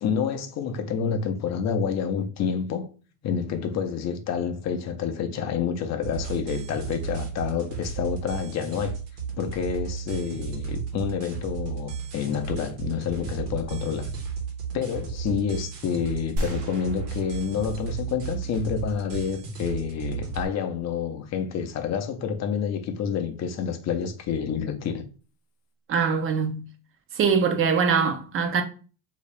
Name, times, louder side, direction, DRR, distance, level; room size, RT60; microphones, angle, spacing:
voice 1, 0.0-2.9 3.2-8.9 9.4-14.1 14.7-25.1, left 7 dB, 35° left, 0.6 m, -28 dB
sound 1, 6.0-20.4, right 6 dB, 90° right, 1.3 m, -34 dB
sound 2, 16.4-18.6, equal, 60° right, 1.0 m, -35 dB
voice 2, 25.9-26.6 27.1-28.6, right 6 dB, 30° right, 0.6 m, -23 dB
2.9 x 2.8 x 3.2 m
supercardioid pair, 115°, 46 cm